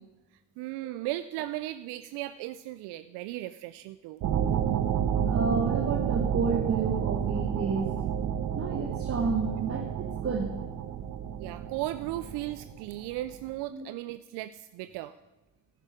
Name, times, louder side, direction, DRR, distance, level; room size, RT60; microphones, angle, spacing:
voice 1, 0.6-4.2 11.4-15.1, right 15 dB, 70° right, 13 dB, 0.5 m, -36 dB
sound 1, 4.2-13.4, right 9 dB, 55° right, 1.0 m, -30 dB
voice 2, 5.3-8.0 8.6-10.5 13.7-13.8, right 4 dB, 30° right, 4 dB, 1.2 m, -31 dB
11.0 x 9.5 x 5.1 m, 1.1 s
supercardioid pair, 85°, 42 cm